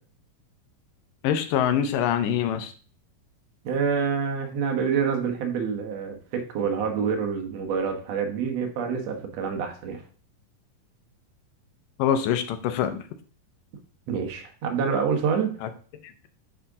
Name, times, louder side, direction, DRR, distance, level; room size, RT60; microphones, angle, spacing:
voice 1, 1.2-2.7 12.0-13.0 15.6-15.7, left 9 dB, 80° left, 9 dB, 2.4 m, -24 dB
voice 2, 3.6-10.0 14.1-15.6, right 6 dB, 60° right, 4 dB, 2.1 m, -27 dB
9.9 x 4.3 x 3.6 m, 0.40 s
omnidirectional pair, 3.8 m